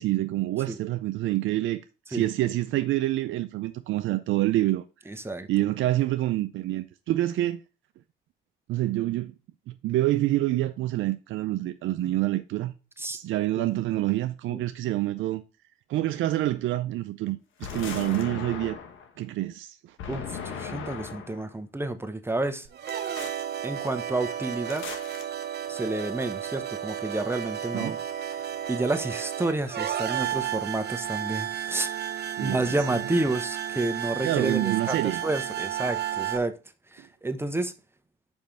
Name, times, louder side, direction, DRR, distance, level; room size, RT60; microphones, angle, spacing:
voice 1, 0.0-1.8 2.1-4.8 5.5-7.6 8.7-9.3 9.7-12.7 13.1-15.4 15.9-18.8 19.2-20.0 27.7-28.0 32.4-33.0 34.2-35.2, right 15 dB, 80° right, 0.5 m, -27 dB
voice 2, 5.1-5.5 13.0-13.2 13.6-13.7 14.5-14.6 20.1-22.7 23.6-24.9 25.7-28.0 28.3-31.9 32.4-36.5 36.9-37.7, right 2 dB, 10° right, 0.8 m, -30 dB
sound 1, 17.6-19.1 20.0-21.5 22.9-23.4 24.7-25.2, left 6 dB, 80° left, 1.3 m, -38 dB
sound 2, 22.7-36.4, right 10 dB, 55° right, 0.8 m, -32 dB
5.4 x 5.2 x 4.4 m
cardioid pair, 90°, 20 cm